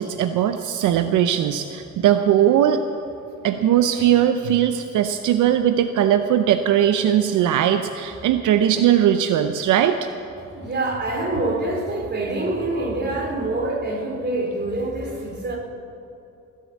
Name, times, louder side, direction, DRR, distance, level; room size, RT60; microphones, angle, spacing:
voice 1, 0.0-2.8 3.4-10.0, right 10 dB, 80° right, 8 dB, 0.7 m, -19 dB
voice 2, 10.5-15.6, right 2 dB, 35° right, -1 dB, 3.8 m, -25 dB
20.0 x 7.7 x 8.4 m, 2.8 s
cardioid pair, 90°, 30 cm